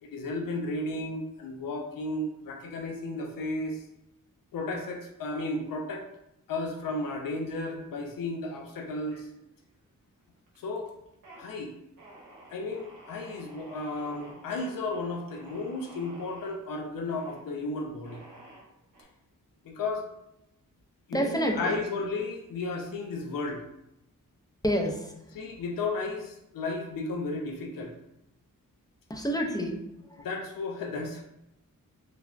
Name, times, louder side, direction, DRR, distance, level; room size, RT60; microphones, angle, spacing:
voice 1, 0.0-3.9 4.5-6.0 6.5-9.3 10.6-10.9 11.4-11.7 12.5-18.2 19.6-20.1 21.1-23.6 25.3-27.9 30.2-31.2, left 2 dB, 75° left, 2 dB, 0.5 m, -34 dB
sound 1, 9.1-9.8 10.2-10.7 11.1-11.4 12.0-16.6 17.1-17.4 18.0-19.0, right 1 dB, 70° right, 0.8 m, -51 dB
voice 2, 21.1-21.8 24.6-25.1 29.1-29.8 30.1-30.3, equal, 10° left, 2 dB, 0.4 m, -28 dB
3.3 x 2.0 x 2.4 m, 0.84 s
cardioid pair, 60°, 34 cm